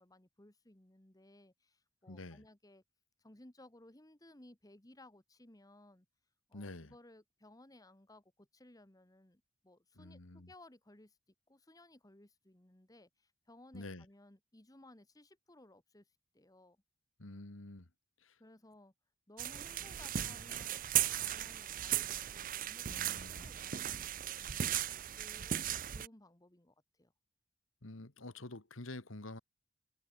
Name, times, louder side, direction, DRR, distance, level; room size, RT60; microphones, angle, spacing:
voice 1, 0.0-2.8 3.2-6.0 6.5-11.2 11.5-16.8 18.4-18.9 19.3-27.1, left 1 dB, 15° left, 1.5 m, -60 dB
voice 2, 2.1-2.5 6.5-7.0 10.0-10.5 13.7-14.1 17.2-17.9 18.2-18.4 22.9-23.5 27.8-29.4, left 2 dB, 70° left, 1.9 m, -48 dB
sound 1, 19.4-26.1, right 11 dB, 40° right, 0.5 m, -37 dB
head